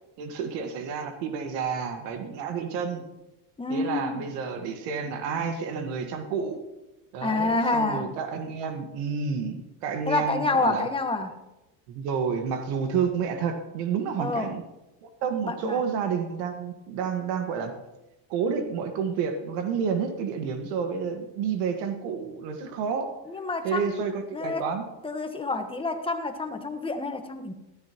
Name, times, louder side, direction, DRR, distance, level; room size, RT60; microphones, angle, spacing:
voice 1, 0.2-3.0 3.7-6.6 7.1-10.9 11.9-14.6 15.0-17.7 18.3-23.1 23.6-24.9, right 6 dB, 75° right, 6 dB, 1.8 m, -30 dB
voice 2, 3.6-4.3 7.2-8.1 10.1-11.4 14.2-14.5 15.4-15.8 23.3-24.0 24.3-24.7 25.0-27.5, left 3 dB, 10° left, 6 dB, 1.3 m, -28 dB
14.0 x 13.0 x 3.0 m, 0.97 s
supercardioid pair, 105°, 49 cm